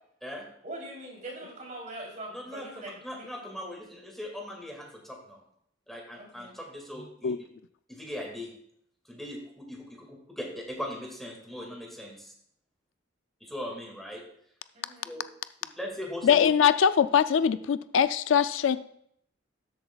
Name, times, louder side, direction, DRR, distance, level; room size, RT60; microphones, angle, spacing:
voice 1, 0.6-3.6 6.1-6.6 14.7-15.2, right 1 dB, 45° right, -2 dB, 3.3 m, -43 dB
voice 2, 2.3-5.4 5.9-7.4 7.9-8.5 9.1-12.3 13.4-14.2 15.0-15.2 15.8-16.4, left 1 dB, ahead, 0 dB, 2.0 m, -40 dB
voice 3, 16.2-18.8, left 8 dB, 80° left, 13 dB, 0.4 m, -22 dB
13.0 x 7.9 x 2.3 m, 0.69 s
head